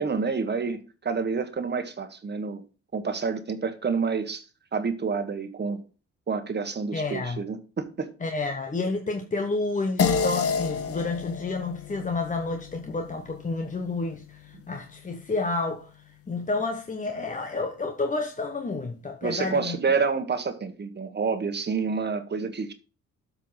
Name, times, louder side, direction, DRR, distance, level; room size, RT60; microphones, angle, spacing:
voice 1, 0.0-2.6 2.9-4.5 4.7-5.8 6.3-8.1 19.2-22.7, right 5 dB, 35° right, 1.5 m, -28 dB
voice 2, 6.9-7.4 8.2-19.8, left 3 dB, 25° left, 1.0 m, -30 dB
sound 1, 10.0-14.7, left 5 dB, 50° left, 1.0 m, -30 dB
8.0 x 4.6 x 5.8 m
cardioid pair, 90°, 30 cm